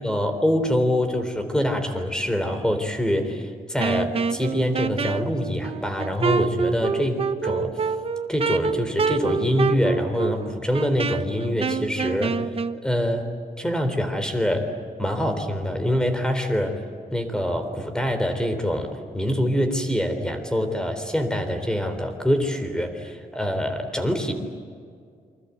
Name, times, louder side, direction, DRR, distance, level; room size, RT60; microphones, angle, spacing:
voice 1, 0.0-7.8 8.3-12.4 12.8-14.7 15.0-16.8 17.1-24.3, equal, 5° left, 7 dB, 3.6 m, -25 dB
Wind instrument woodwind instrument, 3.8-12.8, right 5 dB, 40° right, 1.0 m, -26 dB
28.5 x 25.5 x 8.2 m, 2.2 s
wide cardioid pair, 145°, 16 cm